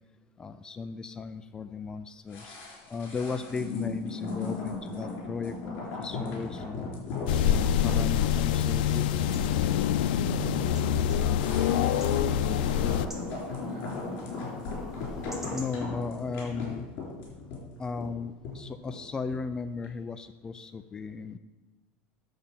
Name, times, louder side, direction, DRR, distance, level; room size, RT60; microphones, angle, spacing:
voice 1, 0.4-2.5 2.9-6.9 7.4-9.1 15.5-16.9 17.8-21.4, left 4 dB, 15° left, 10 dB, 0.3 m, -36 dB
sound 1, 2.3-19.5 19.8-19.9, left 3 dB, 45° left, 4.0 m, -37 dB
sound 2, 7.3-13.1, left 9 dB, 85° left, 0.5 m, -25 dB
sound 3, 8.9-15.8, right 1 dB, 10° right, 1.4 m, -51 dB
voice 2, 10.9-14.1, right 2 dB, 65° right, -4 dB, 4.0 m, -44 dB
8.8 x 6.7 x 7.3 m, 1.1 s
cardioid pair, 165°, 5 cm